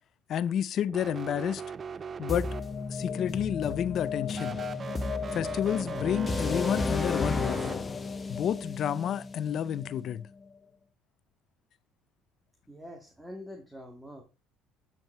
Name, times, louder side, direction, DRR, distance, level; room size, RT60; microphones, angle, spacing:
voice 1, 0.3-1.6 2.2-2.5 2.9-4.6 5.3-7.7 8.3-10.2, left 9 dB, 55° left, 0.6 m, -30 dB
sound 1, 0.9-3.1 4.3-7.7, right 6 dB, 35° right, 0.4 m, -40 dB
sound 2, 2.3-10.2, left 4 dB, 25° left, 1.1 m, -33 dB
voice 2, 12.7-14.2, equal, 5° right, 2.1 m, -45 dB
9.1 x 6.2 x 4.5 m
supercardioid pair, 95°, 0 cm